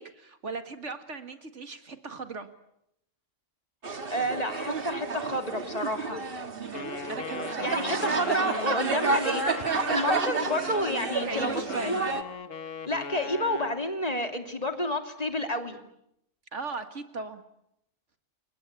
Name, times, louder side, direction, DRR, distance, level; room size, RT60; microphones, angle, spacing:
voice 1, 0.0-2.5 6.6-7.8 8.1-8.6 11.3-12.0 16.5-17.5, right 4 dB, 60° right, 8 dB, 2.2 m, -38 dB
sound 1, 3.8-12.2, right 4 dB, 45° right, 1.8 m, -30 dB
voice 2, 4.1-6.2 7.6-9.4 9.7-12.1 12.9-15.8, equal, 30° left, 5 dB, 2.7 m, -30 dB
Wind instrument woodwind instrument, 6.7-13.8, left 6 dB, 70° left, 1.7 m, -39 dB
29.0 x 24.0 x 8.4 m, 0.79 s
omnidirectional pair, 1.4 m